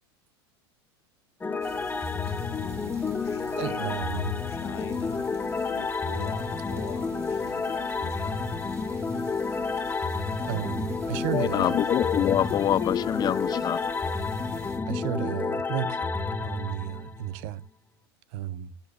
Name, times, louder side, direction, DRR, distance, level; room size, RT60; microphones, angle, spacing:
sound 1, 1.4-17.5, left 4 dB, 15° left, 1.1 m, -30 dB
sound 2, 1.6-14.8, right 2 dB, 20° right, 4.2 m, -48 dB
voice 1, 3.0-8.5, left 11 dB, 80° left, 0.9 m, -44 dB
voice 2, 3.6-4.3 10.4-11.8 14.9-16.0 16.4-17.6 18.3-18.7, right 11 dB, 55° right, 0.9 m, -33 dB
voice 3, 11.3-14.1, left 11 dB, 30° left, 0.4 m, -25 dB
14.0 x 7.2 x 2.5 m
hypercardioid pair, 95°, 14 cm